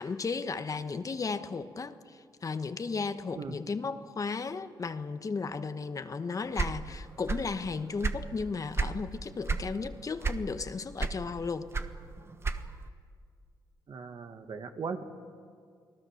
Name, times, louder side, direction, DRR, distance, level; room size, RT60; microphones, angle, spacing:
voice 1, 0.0-11.7, left 4 dB, 40° left, 10 dB, 1.2 m, -35 dB
sound 1, 6.5-7.6 7.8-9.0 9.4-9.7 10.2-10.7 11.0-12.9, right 4 dB, 30° right, 1.3 m, -31 dB
voice 2, 13.9-15.0, right 5 dB, 60° right, 6 dB, 1.9 m, -38 dB
29.0 x 19.5 x 6.6 m, 2.1 s
cardioid pair, 70°, 8 cm